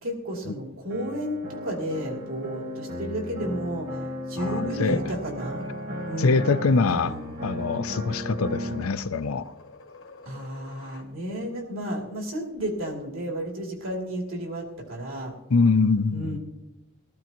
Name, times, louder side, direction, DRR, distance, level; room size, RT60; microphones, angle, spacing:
voice 1, 0.0-5.7 6.1-6.4 6.9-7.3 10.2-15.3 16.1-16.4, right 1 dB, 75° right, 3.0 m, -32 dB
sound 1, 0.9-8.9, left 1 dB, 45° right, 1.5 m, -35 dB
voice 2, 4.4-5.0 6.2-7.2 7.4-9.5 15.5-16.4, left 4 dB, 90° left, 0.6 m, -23 dB
sound 2, 5.3-11.1, left 3 dB, 70° left, 1.3 m, -50 dB
18.0 x 14.0 x 3.0 m
head